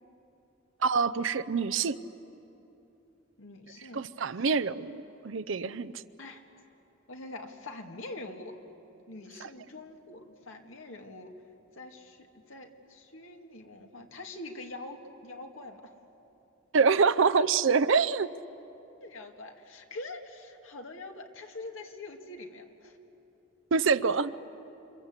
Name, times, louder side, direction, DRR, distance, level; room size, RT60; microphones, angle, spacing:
voice 1, 0.8-2.0 3.9-5.0 5.2-5.9 16.7-18.3 23.7-24.3, right 5 dB, 70° right, 12 dB, 0.6 m, -25 dB
voice 2, 3.4-4.0 4.3-4.5 6.2-6.4 7.1-8.6 9.1-11.3 11.7-15.8 19.0-23.0, left 2 dB, 75° left, 3 dB, 2.1 m, -44 dB
28.0 x 24.5 x 8.1 m, 3.0 s
head